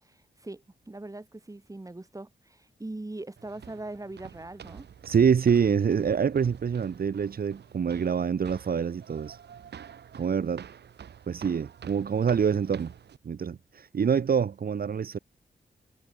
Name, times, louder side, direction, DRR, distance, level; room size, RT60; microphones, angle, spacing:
voice 1, 0.0-4.9, right 2 dB, 20° right, 3.9 m, -41 dB
sound 1, 3.4-13.2, right 8 dB, 80° right, 2.6 m, -48 dB
voice 2, 5.1-9.4 10.1-10.6 11.3-12.9 13.2-15.2, right 7 dB, 60° right, 1.4 m, -26 dB
cardioid pair, 70°, 17 cm